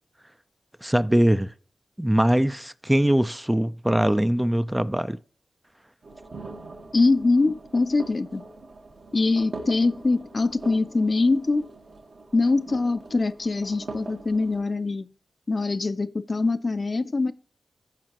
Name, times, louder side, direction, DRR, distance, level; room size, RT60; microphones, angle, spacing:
voice 1, 0.8-1.5 2.0-5.2, right 1 dB, 10° right, 0.4 m, -22 dB
sound 1, 6.0-14.6, right 3 dB, 70° right, 1.5 m, -42 dB
voice 2, 6.9-8.4 9.1-11.7 12.3-15.1 15.5-17.3, left 3 dB, 50° left, 0.6 m, -23 dB
15.0 x 5.0 x 3.0 m
cardioid pair, 40°, 0 cm